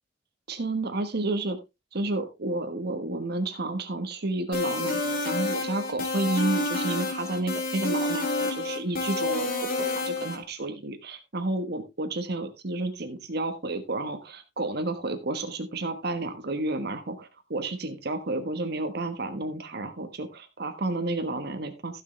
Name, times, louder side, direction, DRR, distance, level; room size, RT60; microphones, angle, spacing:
voice 1, 0.5-1.6 1.9-22.0, right 2 dB, 55° right, 6 dB, 1.3 m, -31 dB
sound 1, 4.5-10.4, left 2 dB, 50° left, 3.1 m, -29 dB
15.5 x 6.5 x 3.3 m, 0.25 s
head